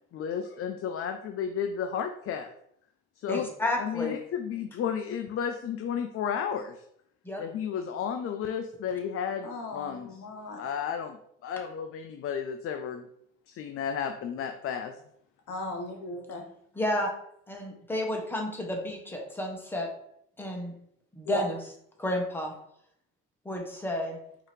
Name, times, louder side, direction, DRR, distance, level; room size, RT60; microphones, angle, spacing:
voice 1, 0.1-2.5 3.2-3.5 3.8-6.8 7.4-10.2 10.6-13.1 13.5-15.0, left 7 dB, 45° left, 6 dB, 0.4 m, -33 dB
voice 2, 3.3-4.2 7.2-7.4 16.7-17.1 17.5-19.9 20.4-20.7 21.1-21.6 22.0-22.5 23.4-24.2, left 1 dB, 5° left, 1 dB, 1.0 m, -31 dB
voice 3, 9.4-10.6 15.5-16.4 21.2-21.4, left 2 dB, 60° left, 4 dB, 1.1 m, -36 dB
4.5 x 2.8 x 3.3 m, 0.71 s
cardioid pair, 85°, 33 cm